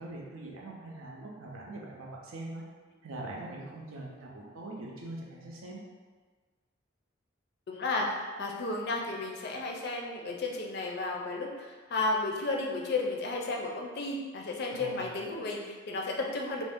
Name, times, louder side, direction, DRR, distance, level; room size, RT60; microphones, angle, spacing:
voice 1, 0.0-2.6 3.0-5.8 14.7-15.2, right 2 dB, 80° right, -2 dB, 0.5 m, -42 dB
voice 2, 7.7-16.6, left 2 dB, 55° left, 0 dB, 0.4 m, -33 dB
2.5 x 2.0 x 3.4 m, 1.4 s
head